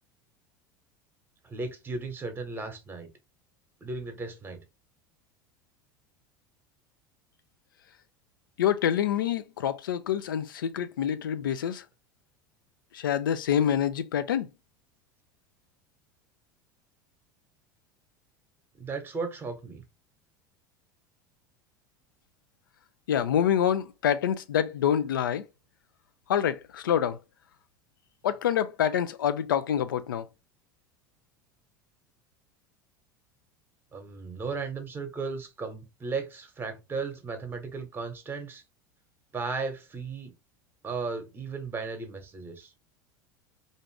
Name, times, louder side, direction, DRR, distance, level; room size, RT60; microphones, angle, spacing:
voice 1, 1.4-3.1 3.8-4.6 18.8-19.8 33.9-38.6 39.3-40.3 40.8-42.7, right 4 dB, 20° right, 1.0 m, -35 dB
voice 2, 8.6-11.8 12.9-14.5 23.1-25.4 26.3-27.2 28.2-30.2, left 9 dB, 80° left, 0.4 m, -26 dB
2.6 x 2.5 x 3.2 m
hypercardioid pair, 80°, 11 cm